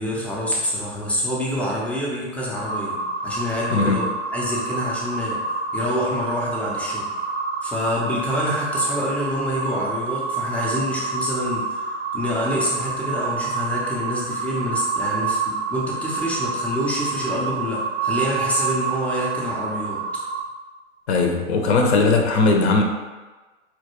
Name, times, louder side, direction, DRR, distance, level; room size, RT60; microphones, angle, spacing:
voice 1, 0.0-4.1 4.3-5.4 5.7-7.1 7.6-20.0, left 1 dB, 5° left, -5 dB, 0.4 m, -26 dB
sound 1, 2.6-20.4, right 4 dB, 55° right, 0.5 m, -28 dB
voice 2, 3.7-4.0 21.1-22.8, left 3 dB, 60° left, 3 dB, 0.6 m, -19 dB
4.3 x 2.3 x 2.9 m, 1.2 s
figure-of-eight pair, 100°, 37 cm